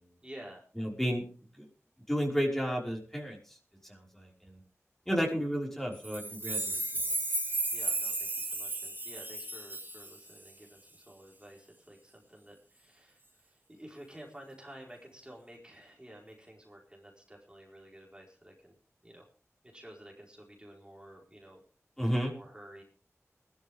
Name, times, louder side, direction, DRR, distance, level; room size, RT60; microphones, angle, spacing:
voice 1, 0.2-0.6 7.7-18.7 19.0-19.3 19.7-21.6 22.3-22.8, right 1 dB, 15° right, -2 dB, 4.8 m, -51 dB
voice 2, 0.8-1.2 1.6-1.7 2.1-3.6 3.8-4.6 5.1-6.8 22.0-22.3, equal, 5° left, -2 dB, 5.5 m, -32 dB
sound 1, 6.0-10.5, right 2 dB, 40° right, 3.6 m, -34 dB
20.5 x 13.0 x 3.7 m, 0.37 s
wide cardioid pair, 60°, 5 cm